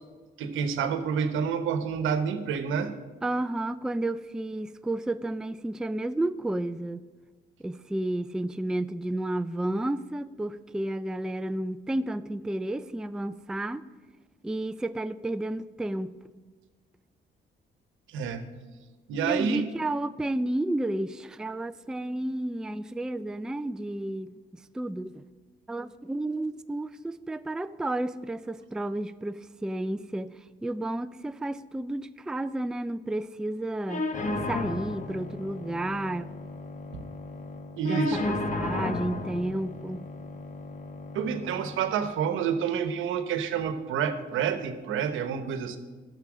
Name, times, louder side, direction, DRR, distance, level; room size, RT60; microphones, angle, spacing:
voice 1, 0.4-2.9 18.1-18.4 19.1-19.7 36.9-37.0 37.8-38.2 41.1-45.8, right 7 dB, 85° right, 1.0 m, -28 dB
voice 2, 3.2-7.1 7.6-13.8 14.4-16.2 19.3-24.3 24.7-25.2 25.7-34.1 34.5-36.3 37.8-40.1, right 1 dB, 5° right, 0.3 m, -32 dB
sound 1, 33.9-41.9, left 2 dB, 40° left, 1.2 m, -34 dB
11.5 x 6.9 x 6.2 m
cardioid pair, 90°, 20 cm